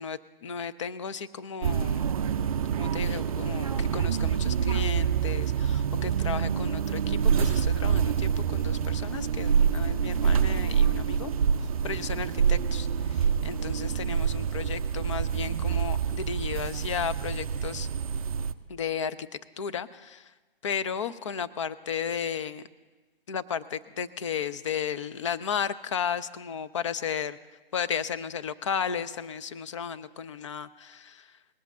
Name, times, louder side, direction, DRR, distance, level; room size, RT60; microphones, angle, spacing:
voice 1, 0.0-2.1 2.8-11.3 11.8-17.9 18.7-19.2 19.6-20.3 20.6-22.6 23.3-27.4 27.7-31.3, left 7 dB, 30° left, 14 dB, 0.4 m, -34 dB
sound 1, 1.6-18.5, right 7 dB, 40° right, 0.4 m, -26 dB
19.0 x 8.0 x 7.4 m, 1.2 s
figure-of-eight pair, 140°, 30 cm